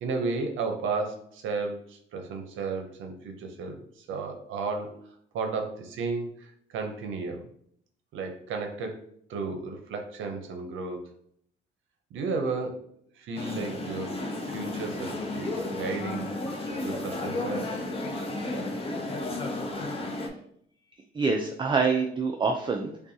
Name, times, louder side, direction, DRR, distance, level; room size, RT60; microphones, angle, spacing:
voice 1, 0.0-4.9 5.3-7.5 8.1-9.0 9.3-11.1 12.1-12.8 13.1-14.2 14.4-17.7, right 4 dB, 80° right, 4 dB, 0.6 m, -33 dB
sound 1, 13.4-20.3, left 2 dB, 30° left, 0.7 m, -33 dB
voice 2, 21.1-23.1, right 4 dB, 25° right, 3 dB, 0.4 m, -27 dB
5.2 x 2.3 x 2.7 m, 0.67 s
cardioid pair, 90°, 20 cm